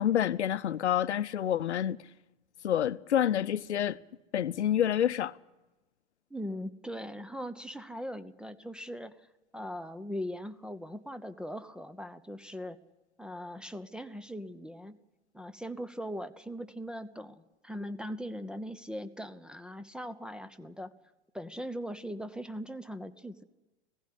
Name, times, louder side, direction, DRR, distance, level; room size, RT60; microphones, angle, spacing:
voice 1, 0.0-2.0 2.6-4.0 4.3-5.4, left 10 dB, 75° left, 0.8 m, -28 dB
voice 2, 6.3-9.3 9.5-12.8 13.2-15.0 15.3-20.9 21.3-23.4, equal, 5° right, 0.8 m, -40 dB
17.0 x 15.5 x 9.9 m
figure-of-eight pair, 100°, 34 cm